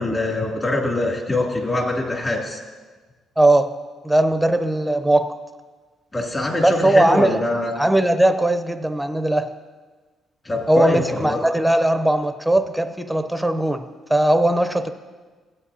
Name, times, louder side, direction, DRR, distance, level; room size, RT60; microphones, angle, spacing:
voice 1, 0.0-2.6 6.1-7.7 10.4-11.4, left 2 dB, 25° left, -2 dB, 2.5 m, -23 dB
voice 2, 3.4-3.8 4.0-5.4 6.6-7.4 7.8-9.5 10.7-13.8 14.1-14.9, right 1 dB, ahead, 9 dB, 0.6 m, -19 dB
16.0 x 8.9 x 2.8 m, 1.3 s
cardioid pair, 90°, 0 cm